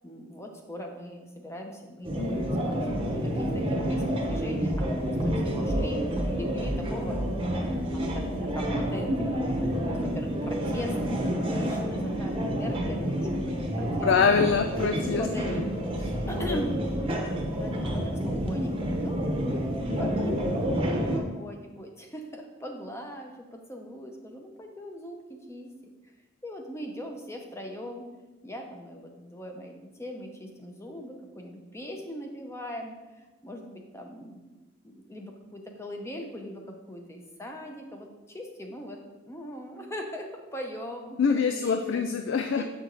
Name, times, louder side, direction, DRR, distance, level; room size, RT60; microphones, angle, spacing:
voice 1, 0.0-7.6 7.9-10.9 11.5-14.1 15.2-15.7 16.3-16.8 17.6-18.8 19.0-19.6 20.0-26.1 26.4-28.0 28.4-34.5 34.8-42.0 42.5-42.6, equal, 15° left, 2 dB, 0.7 m, -40 dB
sound 1, 2.0-21.2, equal, 25° right, 0.9 m, -29 dB
voice 2, 14.0-15.2 16.3-16.6 41.2-42.6, left 5 dB, 65° left, 6 dB, 0.4 m, -24 dB
7.5 x 4.6 x 3.9 m, 1.2 s
head